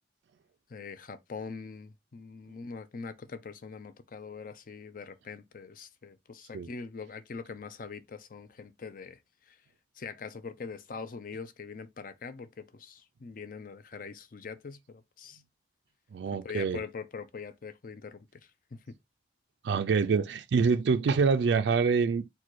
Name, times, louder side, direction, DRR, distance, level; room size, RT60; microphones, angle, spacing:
voice 1, 0.7-9.2 9.5-9.6 10.0-15.4 16.3-19.0, left 5 dB, 50° left, 0.5 m, -43 dB
voice 2, 16.1-16.8 19.6-22.3, right 5 dB, 75° right, 0.3 m, -26 dB
4.1 x 2.2 x 4.6 m
head